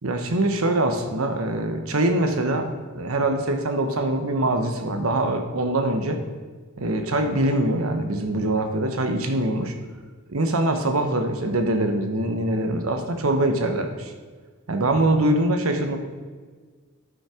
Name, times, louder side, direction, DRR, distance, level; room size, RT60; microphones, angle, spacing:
voice 1, 0.0-2.7 2.9-6.2 6.8-9.7 10.3-14.1 14.7-16.0, right 1 dB, 75° right, 5 dB, 1.0 m, -23 dB
12.5 x 5.5 x 5.0 m, 1.5 s
head